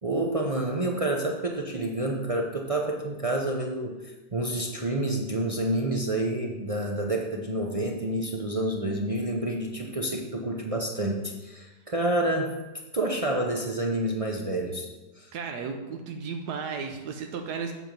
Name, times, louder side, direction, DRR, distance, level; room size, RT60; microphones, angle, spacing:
voice 1, 0.0-12.5 12.9-14.9 15.2-15.3, right 1 dB, 45° right, 0 dB, 0.4 m, -28 dB
voice 2, 15.3-17.7, right 5 dB, 80° right, 4 dB, 1.3 m, -34 dB
8.3 x 6.1 x 5.2 m, 1.1 s
omnidirectional pair, 1.7 m